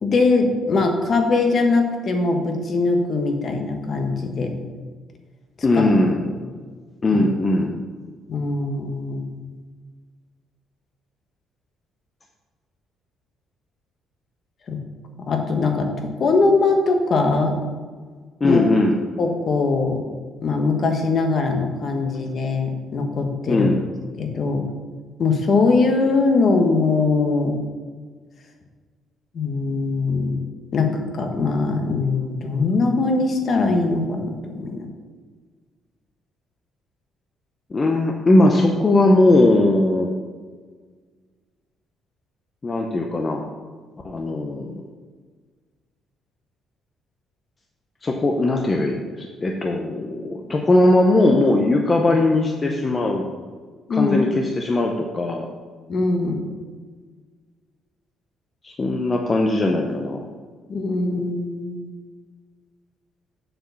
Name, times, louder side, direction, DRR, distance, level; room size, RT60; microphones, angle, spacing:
voice 1, 0.0-4.5 5.7-5.9 6.2-6.3 7.1-7.2 8.3-9.4 14.7-14.8 15.3-17.6 18.4-18.6 19.2-20.0 20.4-23.7 24.2-24.6 25.2-27.5 29.3-30.4 30.7-34.9 53.9-54.3 55.9-56.4 60.7-61.9, left 3 dB, 40° left, 4 dB, 1.1 m, -21 dB
voice 2, 5.6-6.2 7.0-7.8 18.4-18.9 23.5-23.8 37.7-40.1 42.6-43.4 44.0-44.8 48.0-53.3 53.9-55.5 58.6-60.2, left 2 dB, 20° left, 1 dB, 0.6 m, -19 dB
7.5 x 4.8 x 6.8 m, 1.5 s
cardioid pair, 165°, 0 cm